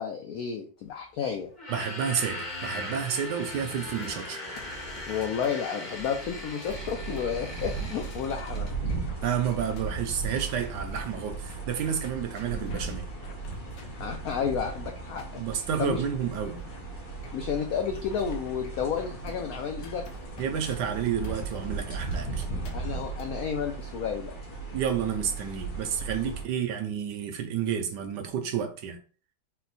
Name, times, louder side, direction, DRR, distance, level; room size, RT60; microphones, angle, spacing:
voice 1, 0.0-1.5 5.1-8.7 14.0-15.4 15.8-16.0 17.3-20.0 22.7-24.4 26.2-26.3, left 7 dB, 85° left, 0.7 m, -31 dB
sound 1, 1.5-8.8, left 1 dB, 30° left, 1.0 m, -39 dB
voice 2, 1.7-4.4 9.2-13.1 15.4-16.7 20.4-22.5 24.7-29.0, right 8 dB, 75° right, 1.1 m, -30 dB
sound 2, 3.7-23.4, left 2 dB, 70° left, 1.3 m, -49 dB
sound 3, 6.6-26.4, right 4 dB, 50° left, 1.6 m, -37 dB
4.3 x 2.1 x 4.0 m
omnidirectional pair, 2.1 m